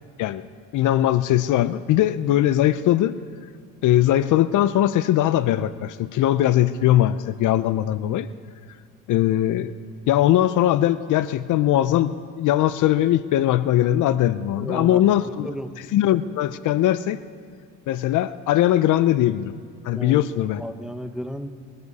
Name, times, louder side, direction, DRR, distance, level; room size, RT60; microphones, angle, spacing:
voice 1, 0.7-3.1 3.8-8.3 9.1-9.7 10.1-15.5 15.9-17.2 17.9-19.5 19.8-20.6, left 13 dB, 60° left, 14 dB, 0.6 m, -20 dB
voice 2, 14.5-15.7 19.9-21.5, equal, ahead, 7 dB, 1.0 m, -34 dB
20.5 x 14.5 x 4.1 m, 2.1 s
cardioid pair, 105°, 36 cm